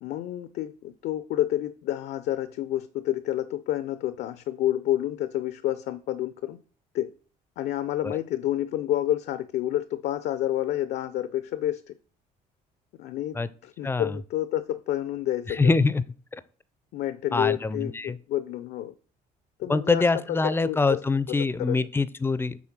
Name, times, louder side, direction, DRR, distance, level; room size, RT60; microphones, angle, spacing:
voice 1, 0.0-6.6 6.9-7.1 7.6-11.8 13.0-13.4 13.6-15.7 16.9-18.9 19.6-21.0 21.3-21.8, left 13 dB, 75° left, 0.5 m, -29 dB
voice 2, 15.6-16.0 17.3-18.2 19.7-22.6, left 3 dB, 15° left, 0.4 m, -24 dB
6.2 x 3.6 x 6.0 m
cardioid pair, 110°, 17 cm